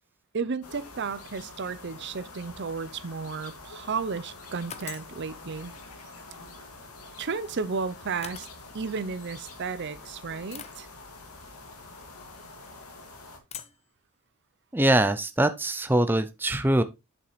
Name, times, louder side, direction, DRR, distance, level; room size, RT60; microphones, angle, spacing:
voice 1, 0.3-5.7 7.2-8.5 8.7-10.9, right 5 dB, 50° right, 0.6 m, -33 dB
sound 1, 0.6-13.4, left 3 dB, 90° left, 2.1 m, -46 dB
sound 2, 4.7-5.2 7.2-7.3 8.2-8.6 9.5-9.6 10.5-10.8 12.4-12.7 13.5-13.9, left 8 dB, 30° left, 0.7 m, -42 dB
voice 2, 14.7-16.8, right 1 dB, 10° right, 0.5 m, -23 dB
8.3 x 7.1 x 3.1 m
head